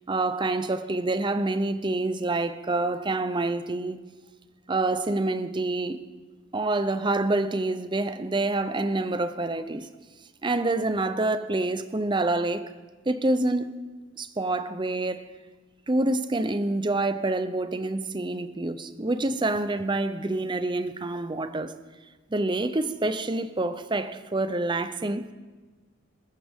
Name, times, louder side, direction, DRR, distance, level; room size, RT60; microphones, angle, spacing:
voice 1, 0.1-4.0 4.7-6.0 6.5-9.9 10.4-12.7 13.1-13.7 14.2-15.2 15.9-21.7 22.3-25.3, right 2 dB, 20° right, 0.6 m, -27 dB
21.5 x 13.5 x 3.6 m
head